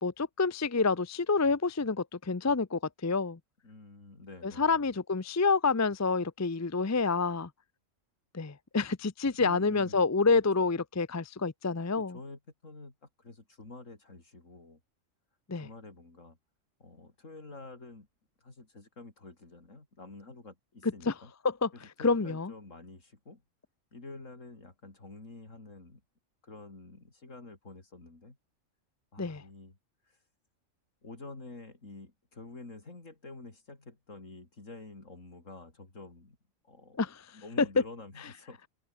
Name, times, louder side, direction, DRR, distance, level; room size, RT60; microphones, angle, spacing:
voice 1, 0.0-3.4 4.4-7.5 8.3-12.2 15.5-15.7 21.1-21.2 21.4-21.7 22.0-22.5 29.2-29.4 37.0-37.2, left 4 dB, 20° left, 0.5 m, -28 dB
voice 2, 3.6-4.9 9.4-10.0 10.3-10.7 12.0-14.8 15.6-16.4 16.8-18.1 18.4-21.3 21.7-23.4 23.9-26.0 26.4-28.4 29.1-29.8 30.0-30.2 31.0-36.4 36.6-38.6, left 3 dB, 70° left, 4.4 m, -48 dB
omnidirectional pair, 1.4 m